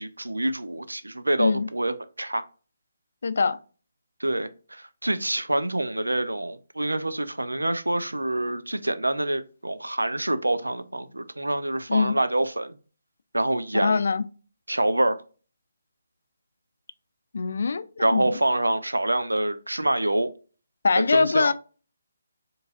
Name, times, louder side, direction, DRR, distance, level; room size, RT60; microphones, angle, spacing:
voice 1, 0.0-2.4 4.2-12.8 13.3-14.0 14.7-15.2 18.0-20.3 21.1-21.5, right 1 dB, 85° right, 0.5 m, -26 dB
voice 2, 3.2-3.6 11.9-12.1 13.8-14.2 17.3-17.8 18.1-18.3 20.8-21.5, left 4 dB, 60° left, 0.4 m, -22 dB
4.6 x 3.1 x 2.5 m
figure-of-eight pair, 145°, 0 cm